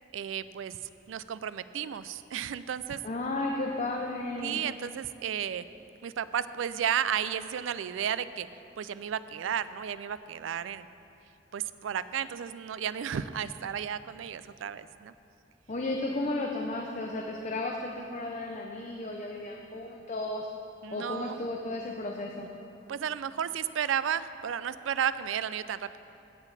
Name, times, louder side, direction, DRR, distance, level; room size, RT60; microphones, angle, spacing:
voice 1, 0.1-0.8 1.1-3.0 4.4-5.6 6.0-8.5 8.8-10.9 11.5-15.1 20.8-21.4 22.9-26.0, right 8 dB, 85° right, 14 dB, 0.4 m, -33 dB
voice 2, 3.0-4.6 15.7-20.5 20.9-22.5, left 2 dB, 40° left, 1 dB, 0.7 m, -34 dB
16.5 x 7.1 x 4.1 m, 2.7 s
head